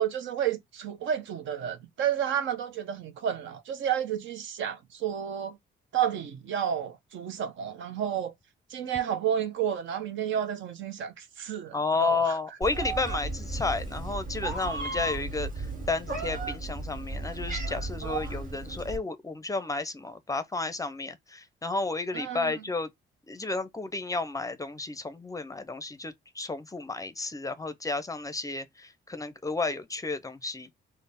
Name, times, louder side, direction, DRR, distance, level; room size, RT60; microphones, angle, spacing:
voice 1, 0.0-5.6 5.9-8.3 8.7-12.2 18.0-18.3 22.1-22.5, right 9 dB, 75° right, 0.7 m, -31 dB
voice 2, 11.7-22.9 23.3-30.7, left 3 dB, 15° left, 0.5 m, -32 dB
Meow, 12.6-19.0, right 3 dB, 45° right, 1.5 m, -35 dB
3.3 x 2.0 x 4.0 m
cardioid pair, 90°, 20 cm